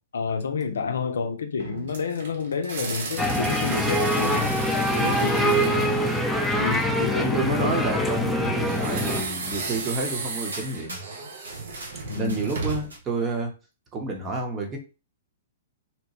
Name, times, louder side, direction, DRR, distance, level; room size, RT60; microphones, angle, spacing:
voice 1, 0.1-4.7 5.0-6.2 6.6-8.0 12.1-12.4, left 5 dB, 80° left, 0.4 m, -29 dB
sound 1, 1.6-7.0 8.7-13.0, right 4 dB, 65° right, 0.7 m, -35 dB
sound 2, 3.2-9.2, equal, ahead, 0.5 m, -24 dB
voice 2, 5.7-6.1 7.0-11.0 12.1-13.6 13.9-14.8, right 3 dB, 25° right, 0.8 m, -30 dB
sound 3, 10.0-10.2 10.5-13.0, right 1 dB, 90° right, 1.0 m, -43 dB
2.9 x 2.2 x 2.9 m
hypercardioid pair, 120°, 0 cm